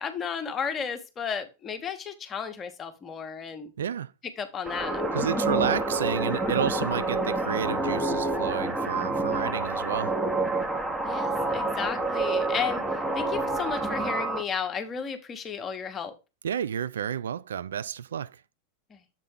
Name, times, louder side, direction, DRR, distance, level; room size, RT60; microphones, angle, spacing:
voice 1, 0.0-3.7 4.4-5.0 11.0-12.8 13.1-16.1 18.9-19.0, left 6 dB, 25° left, 1.0 m, -33 dB
voice 2, 3.8-4.1 5.1-10.2 16.4-18.4, right 8 dB, 65° right, 0.3 m, -30 dB
sound 1, 4.7-14.4, right 2 dB, 10° right, 0.9 m, -28 dB
7.4 x 4.3 x 3.7 m
figure-of-eight pair, 90°, 0 cm